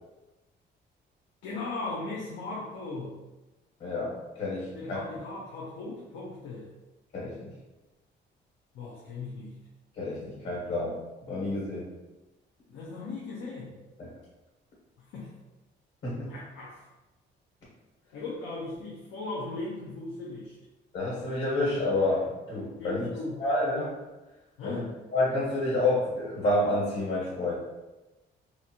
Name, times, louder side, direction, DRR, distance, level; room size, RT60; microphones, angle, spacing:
voice 1, 1.4-3.2 4.7-6.7 8.7-9.6 12.7-13.8 15.0-15.4 16.1-16.9 18.1-20.6 22.8-23.4 24.6-24.9, left 3 dB, 90° left, -4 dB, 0.6 m, -38 dB
voice 2, 3.8-5.0 7.1-7.5 9.9-11.0 11.3-11.9 14.0-14.1 16.0-16.3 20.9-23.0 23.4-23.9 24.6-24.8 25.1-27.5, left 2 dB, 65° left, -6 dB, 1.4 m, -29 dB
2.7 x 2.5 x 2.8 m, 1.1 s
cardioid pair, 90°, 20 cm